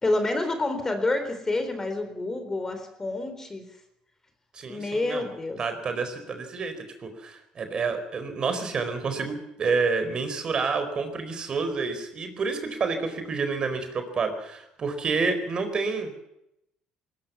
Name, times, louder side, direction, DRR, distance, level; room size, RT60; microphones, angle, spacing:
voice 1, 0.0-3.7 4.7-5.6, left 2 dB, 20° left, 8 dB, 4.0 m, -28 dB
voice 2, 4.5-5.2 5.6-16.1, right 4 dB, 40° right, 8 dB, 4.4 m, -29 dB
20.0 x 20.0 x 7.2 m, 0.82 s
cardioid pair, 110°, 2 cm